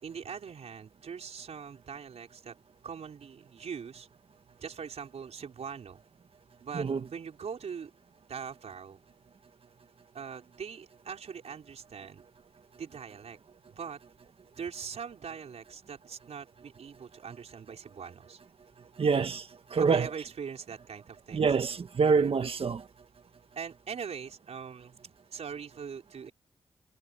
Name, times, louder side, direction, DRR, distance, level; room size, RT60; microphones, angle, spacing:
voice 1, 0.0-2.5 2.8-4.1 4.6-6.0 6.6-6.8 7.1-7.9 8.2-9.0 10.1-12.2 12.8-13.4 13.7-14.0 14.6-18.4 19.7-21.5 22.1-22.3 23.5-26.3, right 6 dB, 70° right, 4.8 m, -42 dB
voice 2, 19.0-19.4 19.7-20.1 21.3-22.8, right 5 dB, 55° right, 1.6 m, -26 dB
wide cardioid pair, 95°, 11 cm